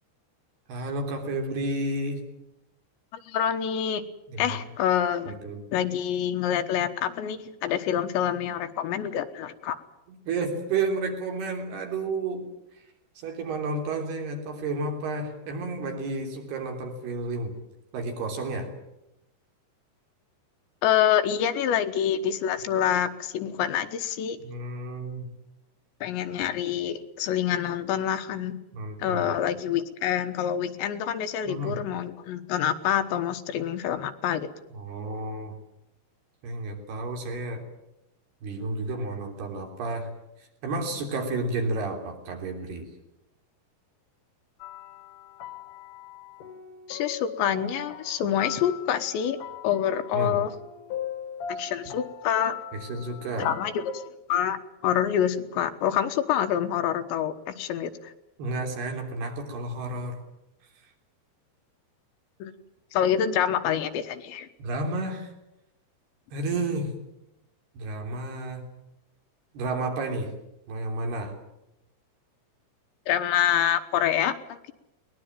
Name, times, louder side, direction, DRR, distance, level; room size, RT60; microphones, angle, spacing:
voice 1, 0.7-2.2 4.3-4.6 5.3-5.6 10.1-12.4 13.2-17.6 17.9-18.7 24.4-25.3 28.7-29.3 31.5-31.8 34.7-35.6 36.4-37.6 38.4-40.1 40.4-42.9 50.1-50.4 52.7-53.6 58.4-60.2 64.6-65.3 66.3-66.9 67.7-68.6 69.5-70.3 70.7-71.3, right 2 dB, 65° right, 3 dB, 5.3 m, -31 dB
voice 2, 3.3-4.0 4.4-5.4 5.7-9.8 20.8-24.4 26.0-28.6 29.0-34.5 46.9-49.4 49.6-50.5 51.5-52.6 53.4-54.0 54.3-58.1 62.4-62.5 62.9-64.5 73.1-74.7, left 9 dB, 85° left, 8 dB, 3.5 m, -26 dB
sound 1, 44.6-54.1, left 8 dB, 60° left, 2.5 m, -40 dB
21.5 x 20.0 x 9.1 m, 0.89 s
omnidirectional pair, 5.0 m